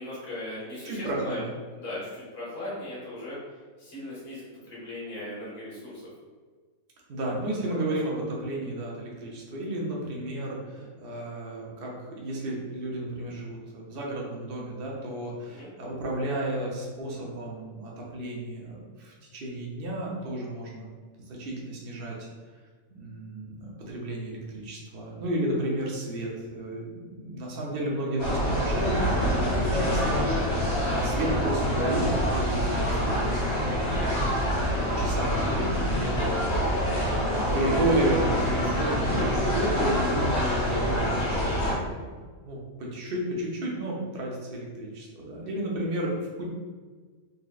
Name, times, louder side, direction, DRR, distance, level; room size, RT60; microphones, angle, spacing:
voice 1, 0.0-1.4 1.7-3.4 3.8-6.0 7.7-8.2 10.7-10.8 15.5-15.7 37.1-37.5 40.5-40.6, left 1 dB, 40° left, -8 dB, 1.6 m, -39 dB
voice 2, 0.8-1.5 7.1-20.9 21.3-22.3 22.9-42.1 42.4-46.5, right 1 dB, 50° right, -3 dB, 0.8 m, -32 dB
sound 1, 28.2-41.7, equal, 70° left, 1.6 m, -26 dB
4.1 x 2.9 x 2.4 m, 1.5 s
omnidirectional pair, 1.6 m